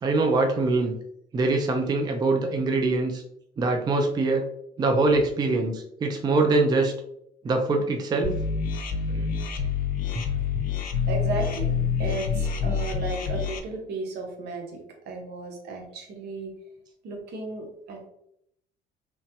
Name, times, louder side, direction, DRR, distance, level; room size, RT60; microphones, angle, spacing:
voice 1, 0.0-0.9 1.3-3.2 3.6-4.4 4.8-6.9 7.4-8.3 9.1-9.3, right 3 dB, 25° right, 3 dB, 0.4 m, -23 dB
sound 1, 8.2-13.6, left 6 dB, 55° left, 0.5 m, -27 dB
voice 2, 11.1-11.7 12.0-16.5 17.0-18.1, right 3 dB, 75° right, 2 dB, 0.8 m, -34 dB
3.0 x 2.1 x 2.8 m, 0.74 s
cardioid pair, 110°, 17 cm